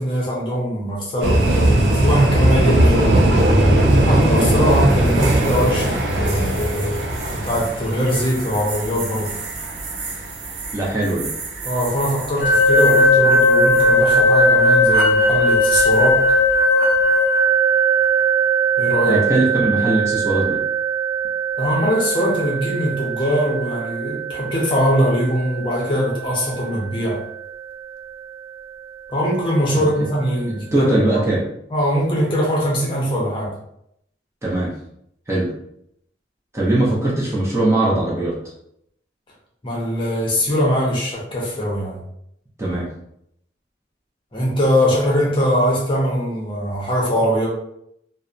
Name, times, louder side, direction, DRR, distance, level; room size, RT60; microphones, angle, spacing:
voice 1, 0.0-3.2 4.1-9.4 11.6-16.3 18.8-19.2 21.6-27.2 29.1-31.3 31.7-33.5 39.6-42.0 44.3-47.5, equal, 30° left, -4 dB, 0.7 m, -21 dB
sound 1, 1.2-13.1 13.4-13.8 15.8-16.1, right 1 dB, 80° right, 0.5 m, -19 dB
voice 2, 10.7-11.3 19.1-20.6 29.7-29.9 30.5-31.5 34.4-34.8 35.3-35.5 36.5-38.4 42.6-42.9, right 2 dB, 15° right, -6 dB, 0.5 m, -20 dB
sound 2, 12.4-27.3, equal, 80° left, 0.5 m, -18 dB
2.7 x 2.0 x 2.4 m, 0.74 s
head